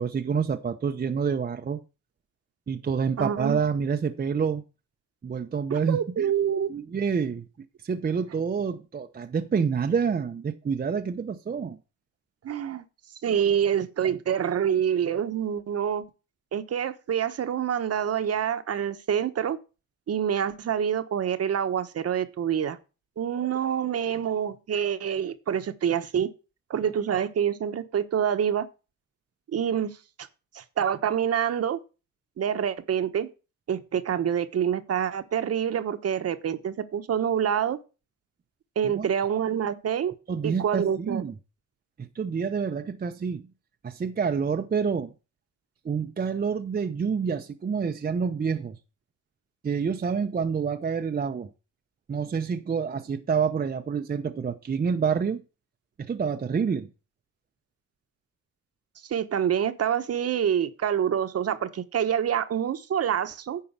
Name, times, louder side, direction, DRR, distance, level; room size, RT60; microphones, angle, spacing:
voice 1, 0.0-1.8 2.7-4.6 5.2-6.3 6.7-7.4 7.8-11.8 38.9-39.1 40.3-41.3 42.1-43.4 43.8-45.1 45.8-48.8 49.6-51.5 52.1-55.4 56.0-56.9, right 6 dB, 30° right, 0.8 m, -27 dB
voice 2, 3.2-3.6 5.7-6.7 12.4-12.8 13.2-16.1 16.5-19.6 20.1-22.8 23.2-26.3 26.7-28.7 29.5-30.0 30.5-31.8 32.4-33.3 33.7-37.8 38.8-40.1 40.4-41.2 59.0-63.6, right 8 dB, 55° right, 1.2 m, -26 dB
9.8 x 4.6 x 7.3 m
cardioid pair, 90°, 30 cm